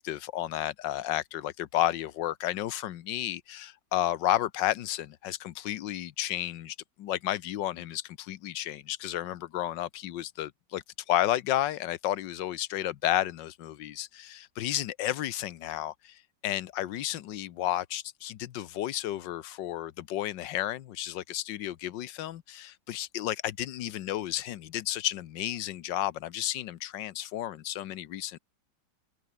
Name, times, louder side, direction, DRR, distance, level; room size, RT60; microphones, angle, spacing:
voice 1, 0.0-28.4, left 13 dB, 75° left, 1.5 m, -32 dB
omnidirectional pair, 2.0 m